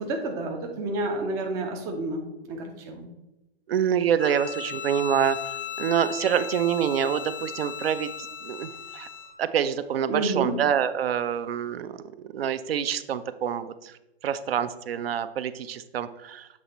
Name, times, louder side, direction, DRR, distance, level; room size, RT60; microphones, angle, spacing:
voice 1, 0.0-2.2 2.5-3.0 10.1-10.6, right 2 dB, 10° right, 3 dB, 0.3 m, -29 dB
voice 2, 3.7-9.1 9.4-16.5, right 8 dB, 70° right, 12 dB, 0.5 m, -27 dB
Bowed string instrument, 4.2-9.4, left 8 dB, 60° left, 0.6 m, -37 dB
7.6 x 3.0 x 4.1 m, 0.95 s
hypercardioid pair, 125°, 31 cm